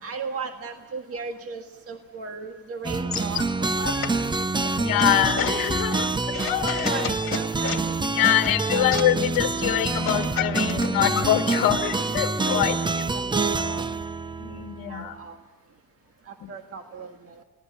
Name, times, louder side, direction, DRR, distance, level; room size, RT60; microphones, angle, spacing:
voice 1, 0.0-4.2 4.6-4.7 6.3-9.0 11.4-12.0 12.5-12.7 13.1-13.8 14.9-15.4 16.2-17.4, right 4 dB, 40° right, 5 dB, 1.7 m, -37 dB
sound 1, 2.8-15.1, right 3 dB, 15° right, 0.7 m, -26 dB
sound 2, 2.9-11.4, left 7 dB, 40° left, 2.2 m, -33 dB
voice 2, 4.7-7.0 8.0-12.8 14.4-15.1 16.4-16.5, left 13 dB, 80° left, 8 dB, 1.4 m, -25 dB
28.5 x 19.0 x 8.3 m, 1.2 s
cardioid pair, 115°, 34 cm